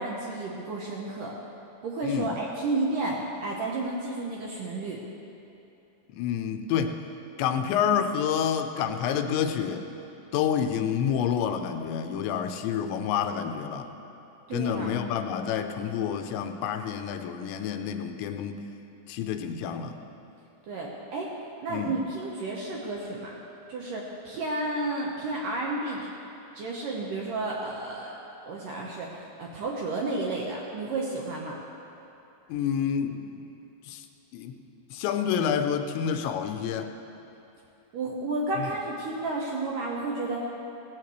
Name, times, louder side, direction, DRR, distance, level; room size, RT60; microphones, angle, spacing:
voice 1, 0.0-1.3 1.8-5.0 14.5-14.9 20.7-21.3 21.6-23.3 23.7-26.1 26.5-28.1 28.5-31.6 37.9-40.5, right 2 dB, 70° right, -3 dB, 2.1 m, -32 dB
voice 2, 2.0-2.3 6.1-7.0 7.4-9.9 10.3-13.9 14.5-18.6 19.1-20.0 21.7-21.9 32.5-33.5 33.9-34.0 34.3-34.6 34.9-36.9 38.6-38.7, left 8 dB, 90° left, 7 dB, 3.0 m, -28 dB
17.5 x 15.5 x 3.1 m, 2.8 s
omnidirectional pair, 5.1 m